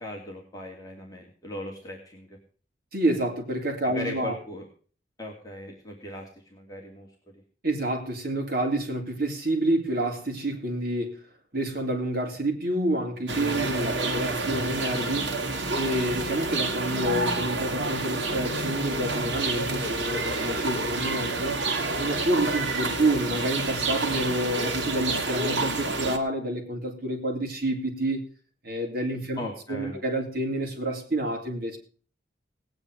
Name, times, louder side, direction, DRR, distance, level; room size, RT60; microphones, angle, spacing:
voice 1, 0.0-2.4 3.8-4.6 5.2-7.1 29.4-30.0, left 1 dB, 20° left, -1 dB, 2.7 m, -38 dB
voice 2, 2.9-4.4 7.6-11.2 11.5-15.4 15.7-21.6 22.0-28.2 28.6-29.4 29.7-31.8, right 1 dB, 55° right, 2 dB, 3.6 m, -28 dB
sound 1, 13.3-26.2, right 3 dB, 75° right, 2.2 m, -29 dB
18.5 x 9.7 x 4.9 m, 0.42 s
head